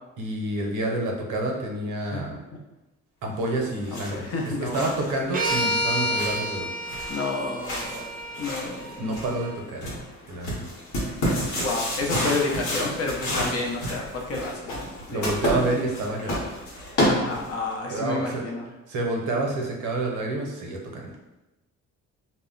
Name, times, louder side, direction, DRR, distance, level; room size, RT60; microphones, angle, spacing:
voice 1, 0.2-2.4 3.2-6.7 9.0-9.9 10.3-10.7 15.1-16.4 17.9-18.4 18.9-21.1, right 2 dB, 80° right, 0 dB, 0.7 m, -28 dB
sound 1, 3.5-17.7, equal, 85° left, 1.0 m, -31 dB
voice 2, 3.9-4.9 7.1-8.0 8.4-9.0 11.6-15.6 17.0-18.6, left 3 dB, 55° left, 0 dB, 0.6 m, -30 dB
sound 2, 5.3-9.5, equal, 30° right, 0.4 m, -29 dB
2.0 x 2.0 x 3.7 m, 1.0 s
cardioid pair, 90°, 30 cm